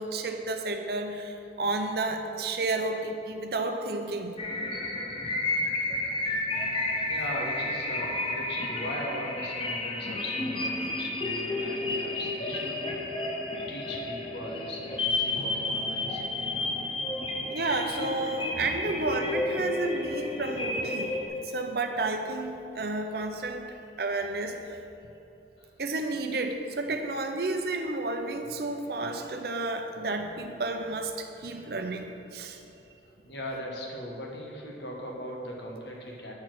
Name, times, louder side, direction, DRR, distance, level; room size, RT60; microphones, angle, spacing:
voice 1, 0.0-4.3 17.4-24.8 25.8-32.6, right 2 dB, 55° right, 5 dB, 0.6 m, -31 dB
sound 1, 4.4-21.3, left 2 dB, 30° left, 0.7 m, -31 dB
voice 2, 7.0-13.0 13.7-16.8 21.5-21.6 25.6-25.7 33.0-36.3, left 1 dB, 70° left, -1 dB, 1.4 m, -39 dB
8.5 x 4.7 x 6.0 m, 2.9 s
head